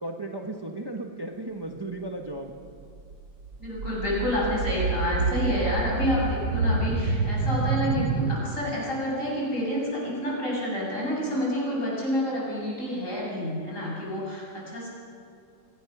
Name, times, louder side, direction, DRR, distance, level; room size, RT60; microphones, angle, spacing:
voice 1, 0.0-2.5, right 2 dB, 15° right, 2 dB, 1.1 m, -35 dB
sound 1, 3.0-8.4, right 4 dB, 65° right, 1.7 m, -27 dB
voice 2, 3.6-14.9, left 1 dB, 50° left, -4 dB, 8.0 m, -29 dB
25.0 x 19.0 x 6.0 m, 2.4 s
omnidirectional pair, 1.8 m